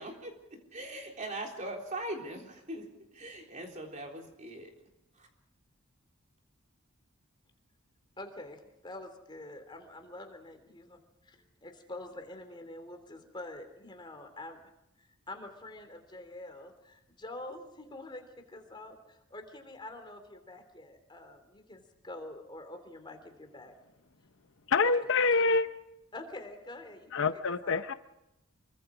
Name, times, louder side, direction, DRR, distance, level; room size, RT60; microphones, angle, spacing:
voice 1, 0.0-2.9 3.1-4.7 5.2-5.3, right 1 dB, 35° right, 1 dB, 3.7 m, -41 dB
voice 2, 8.2-14.6 15.0-23.7 24.8-25.1 26.1-27.2 27.6-27.8, left 2 dB, 20° left, 6 dB, 3.2 m, -46 dB
voice 3, 24.7-25.7 27.1-27.9, left 4 dB, 60° left, 10 dB, 0.8 m, -26 dB
26.0 x 23.5 x 5.0 m, 0.88 s
head